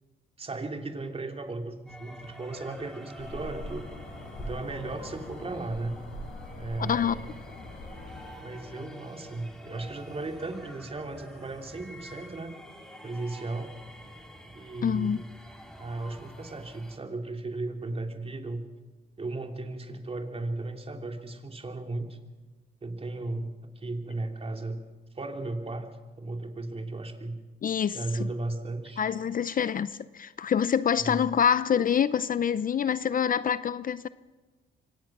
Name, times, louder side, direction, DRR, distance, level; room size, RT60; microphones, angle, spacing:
voice 1, 0.4-3.9 4.4-6.0 6.6-7.3 8.4-12.5 13.0-13.7 14.4-15.2 15.8-18.6 19.2-22.2 22.8-24.8 25.1-25.9 26.2-27.4 27.9-29.0 31.0-31.2, right 2 dB, 30° right, 3.0 m, -35 dB
sound 1, 1.9-17.0, equal, 5° left, 3.5 m, -48 dB
sound 2, 3.2-8.3, left 2 dB, 75° left, 7.0 m, -42 dB
voice 2, 6.8-7.2 14.8-15.2 27.6-28.3 29.0-34.1, left 8 dB, 45° left, 0.6 m, -26 dB
24.5 x 17.5 x 6.1 m
cardioid pair, 90°, 20 cm